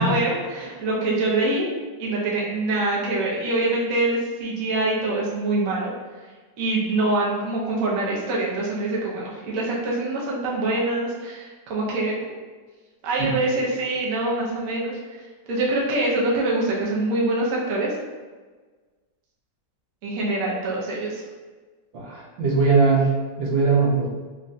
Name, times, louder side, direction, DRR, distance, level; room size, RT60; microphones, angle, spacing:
voice 1, 0.0-1.6 2.0-5.9 6.6-12.4 13.0-17.9 20.0-21.2, right 2 dB, 60° right, -4 dB, 0.9 m, -25 dB
voice 2, 21.9-23.1 23.4-24.1, right 4 dB, 85° right, -4 dB, 1.5 m, -20 dB
3.8 x 2.1 x 2.5 m, 1.4 s
omnidirectional pair, 2.0 m